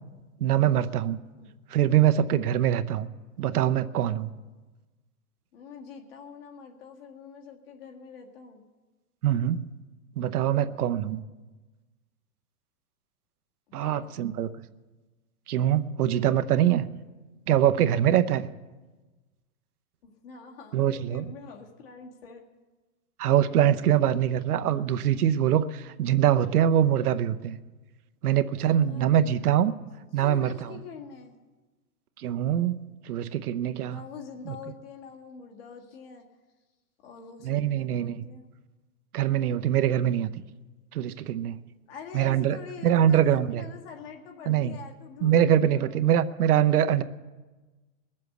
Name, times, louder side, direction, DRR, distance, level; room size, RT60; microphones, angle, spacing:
voice 1, 0.4-1.2 1.7-3.1 3.4-4.3 9.2-9.6 10.2-11.2 13.7-14.5 15.5-16.9 17.5-18.5 20.7-21.2 23.2-27.6 28.2-29.7 30.1-30.5 32.2-34.0 37.4-38.2 39.1-40.3 40.9-41.6 42.1-42.6 42.8-43.6 44.5-44.8 45.2-47.0, right 10 dB, 75° right, 11 dB, 0.9 m, -23 dB
voice 2, 5.5-8.6 13.8-14.1 20.0-22.4 28.6-29.4 30.1-31.4 33.8-36.2 37.0-38.5 41.9-46.0, left 6 dB, 40° left, 3 dB, 1.8 m, -45 dB
20.5 x 7.5 x 7.9 m, 1.2 s
hypercardioid pair, 170°, 45 cm